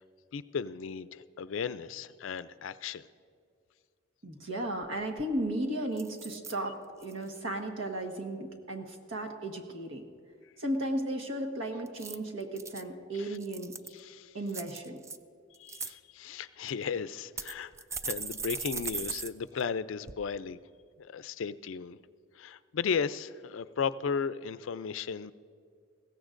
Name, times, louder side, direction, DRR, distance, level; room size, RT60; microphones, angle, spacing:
voice 1, 0.3-3.1 13.1-13.4 13.9-14.4 15.6-17.7 18.0-20.6 21.0-22.0 22.4-25.3, left 6 dB, 80° left, 15 dB, 0.4 m, -35 dB
voice 2, 4.2-10.0 10.6-13.7 14.3-15.0, right 1 dB, 85° right, 4 dB, 1.4 m, -35 dB
sound 1, 4.8-4.9 5.2-5.5 6.0-6.6 7.0-7.4 11.9-12.8 13.3-14.0 14.5-15.2 15.5-15.9 16.7-16.8 17.4-19.3 19.6-19.7 20.1-20.2, right 5 dB, 15° right, 0.3 m, -39 dB
20.5 x 16.5 x 2.5 m, 2.2 s
head